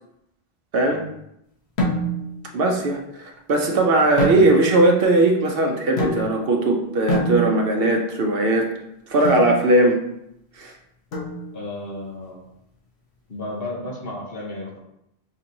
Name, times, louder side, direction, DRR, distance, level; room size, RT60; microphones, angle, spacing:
sound 1, 1.8-2.4 4.2-4.9 6.0-6.6 7.1-7.9 9.2-9.6 11.1-11.7, equal, 80° left, 1.2 m, -26 dB
voice 1, 2.5-8.7 9.1-10.0 10.6-10.7, right 2 dB, 65° right, 2 dB, 0.8 m, -19 dB
voice 2, 11.5-12.4 13.3-14.8, left 1 dB, 60° left, -2 dB, 1.2 m, -33 dB
5.9 x 2.9 x 2.6 m, 0.80 s
omnidirectional pair, 1.1 m